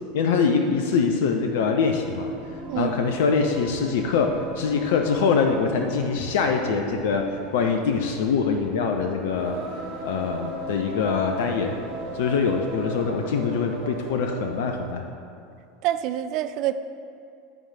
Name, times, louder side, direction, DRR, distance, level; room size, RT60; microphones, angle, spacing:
voice 1, 0.1-2.3 2.8-7.3 7.5-9.6 10.0-11.7 12.1-15.0, left 5 dB, 60° left, 4 dB, 0.5 m, -23 dB
Singing, 1.7-14.9, right 1 dB, 65° right, 2.0 m, -37 dB
voice 2, 2.7-3.0 15.8-16.7, right 12 dB, 45° right, 10 dB, 0.4 m, -26 dB
8.9 x 4.8 x 5.4 m, 2.4 s
figure-of-eight pair, 80°, 0 cm